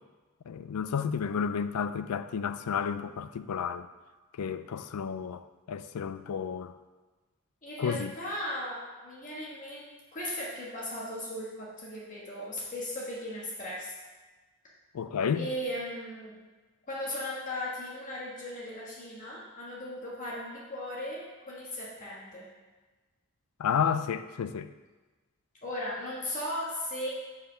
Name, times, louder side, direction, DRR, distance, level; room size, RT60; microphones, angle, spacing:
voice 1, 0.5-3.9 4.4-6.7 7.8-8.1 14.9-15.5 23.6-24.7, left 7 dB, 85° left, 12 dB, 0.4 m, -31 dB
voice 2, 7.6-13.9 15.3-16.3 16.9-22.5 25.6-27.1, left 1 dB, 35° left, -6 dB, 1.4 m, -37 dB
5.1 x 5.0 x 6.2 m, 1.2 s
head